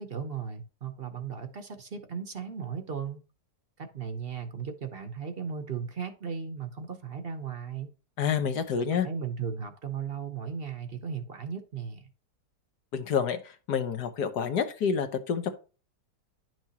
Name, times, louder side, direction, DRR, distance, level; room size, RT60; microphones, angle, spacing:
voice 1, 0.0-3.2 3.8-7.9 8.8-12.1, right 6 dB, 45° right, 8 dB, 0.8 m, -36 dB
voice 2, 8.2-9.1 12.9-15.5, left 7 dB, 70° left, 8 dB, 1.6 m, -28 dB
10.5 x 6.1 x 2.9 m, 0.34 s
omnidirectional pair, 1.8 m